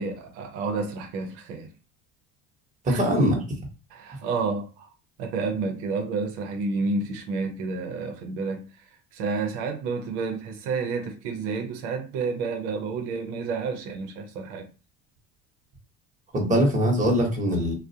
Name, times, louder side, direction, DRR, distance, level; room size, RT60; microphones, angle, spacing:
voice 1, 0.0-1.7 2.9-3.0 3.9-4.9 5.2-8.9 9.1-14.7, right 4 dB, 80° right, 0.7 m, -30 dB
voice 2, 2.8-3.4 16.3-17.7, equal, 20° right, 1.0 m, -22 dB
2.3 x 2.1 x 2.7 m
supercardioid pair, 105°, 34 cm